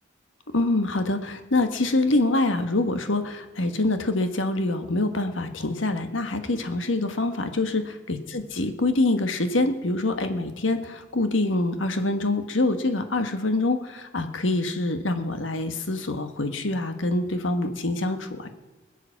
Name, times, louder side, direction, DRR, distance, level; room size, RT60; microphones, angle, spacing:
voice 1, 0.5-7.8 8.1-18.5, left 2 dB, 85° left, 8 dB, 1.5 m, -25 dB
21.0 x 8.1 x 7.2 m, 1.2 s
head